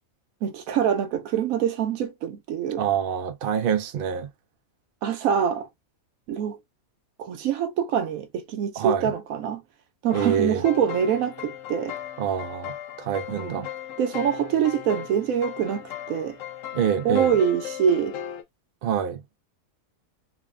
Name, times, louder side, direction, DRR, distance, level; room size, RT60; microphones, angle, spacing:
voice 1, 0.4-2.8 5.0-5.7 6.3-6.6 7.2-9.6 10.0-12.0 13.3-13.7 14.0-16.4 17.0-18.2, right 8 dB, 85° right, 1.1 m, -25 dB
voice 2, 2.8-4.3 8.8-9.1 10.1-10.6 12.2-13.7 16.7-17.3 18.8-19.2, right 8 dB, 60° right, 0.6 m, -26 dB
sound 1, 10.1-18.4, left 11 dB, 75° left, 1.0 m, -37 dB
3.1 x 2.1 x 2.3 m
omnidirectional pair, 1.4 m